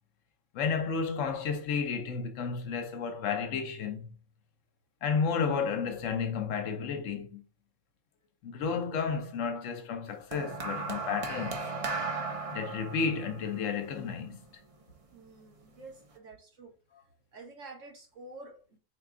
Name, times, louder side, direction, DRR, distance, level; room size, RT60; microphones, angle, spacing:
voice 1, 0.5-4.1 5.0-7.4 8.4-11.7 12.5-14.5, left 5 dB, 75° left, 1.0 m, -32 dB
sound 1, 10.3-14.7 15.7-15.9, right 4 dB, 45° right, 0.5 m, -36 dB
voice 2, 15.1-16.7 17.3-18.8, right 2 dB, 75° right, 1.7 m, -49 dB
4.4 x 2.3 x 3.7 m
omnidirectional pair, 1.4 m